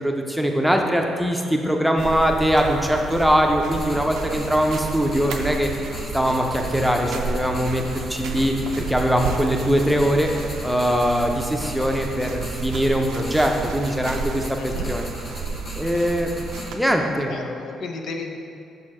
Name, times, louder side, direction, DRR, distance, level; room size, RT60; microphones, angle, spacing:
voice 1, 0.0-5.7 6.1-10.3 10.6-15.1 15.8-16.3 16.7-17.3, equal, ahead, 2 dB, 0.6 m, -22 dB
sound 1, 2.0-16.8, right 5 dB, 85° right, 0.5 m, -32 dB
sound 2, 3.7-16.7, left 1 dB, 40° left, 1.3 m, -40 dB
voice 2, 14.5-14.9 16.9-18.4, left 4 dB, 70° left, 3 dB, 0.6 m, -34 dB
6.2 x 4.4 x 4.9 m, 2.5 s
cardioid pair, 90°, 0 cm